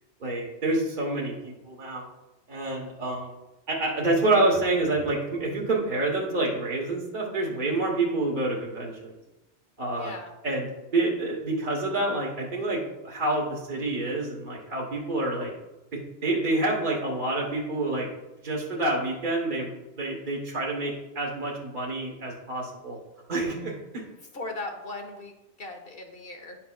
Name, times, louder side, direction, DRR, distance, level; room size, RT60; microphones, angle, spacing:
voice 1, 0.2-2.0 2.5-3.3 3.7-9.1 9.8-10.1 10.4-10.7 10.9-15.5 16.2-18.1 18.4-23.0 23.3-23.7, right 2 dB, 40° right, -3 dB, 1.2 m, -27 dB
voice 2, 9.9-10.3 24.3-25.3 25.6-26.6, left 2 dB, 55° left, 3 dB, 1.2 m, -38 dB
10.5 x 5.8 x 2.3 m, 0.99 s
omnidirectional pair, 1.2 m